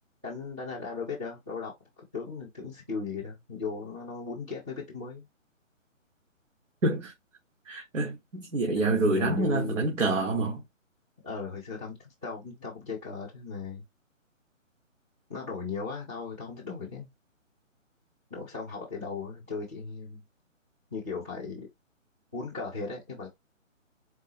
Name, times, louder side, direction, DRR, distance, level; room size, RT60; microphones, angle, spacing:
voice 1, 0.2-1.7 2.1-5.2 8.7-9.8 11.2-13.8 15.3-17.1 18.3-20.2 20.9-21.7 22.3-23.3, left 4 dB, 10° right, 0.5 m, -37 dB
voice 2, 6.8-7.1 7.7-10.6, right 2 dB, 70° right, 1.4 m, -27 dB
4.5 x 2.0 x 4.3 m
hypercardioid pair, 155°, 39 cm